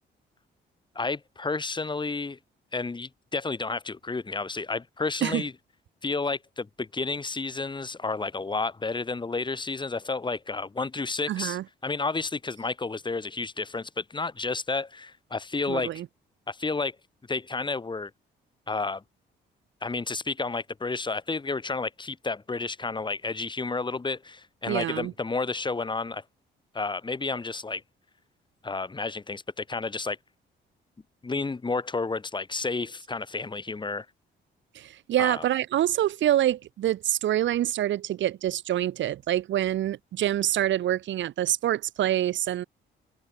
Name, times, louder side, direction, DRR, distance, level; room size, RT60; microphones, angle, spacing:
voice 1, 1.0-2.4 2.7-5.5 6.0-15.9 16.5-17.0 17.3-18.1 18.7-19.0 19.8-26.2 26.7-27.8 28.6-30.2 31.2-34.1 35.2-35.5, left 3 dB, 25° left, 1.9 m, -31 dB
voice 2, 11.3-11.6 15.7-16.1 24.7-25.1 34.7-42.6, right 12 dB, 70° right, 1.1 m, -26 dB
cardioid pair, 90°, 20 cm